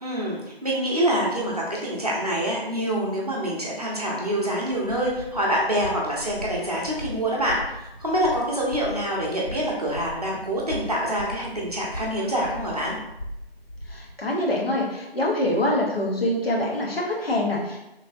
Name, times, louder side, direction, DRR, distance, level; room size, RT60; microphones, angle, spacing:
voice 1, 0.0-13.0, equal, 40° right, -4 dB, 0.6 m, -26 dB
sound 1, 4.7-14.1, equal, 40° left, 0.5 m, -39 dB
voice 2, 13.9-17.9, left 1 dB, 65° left, -3 dB, 1.0 m, -25 dB
3.1 x 2.8 x 2.6 m, 0.89 s
figure-of-eight pair, 165°, 31 cm